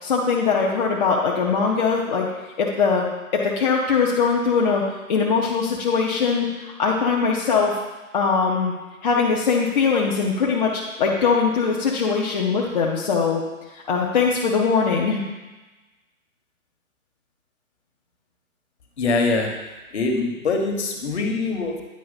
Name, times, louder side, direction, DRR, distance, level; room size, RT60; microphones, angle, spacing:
voice 1, 0.0-2.3 2.6-3.1 3.3-4.8 5.1-7.8 8.1-8.7 9.0-13.4 13.7-15.2, left 5 dB, 35° left, -3 dB, 0.7 m, -21 dB
voice 2, 19.0-19.5 19.9-21.8, left 3 dB, 50° left, 3 dB, 1.3 m, -23 dB
9.4 x 4.7 x 4.0 m, 1.2 s
figure-of-eight pair, 135°, 42 cm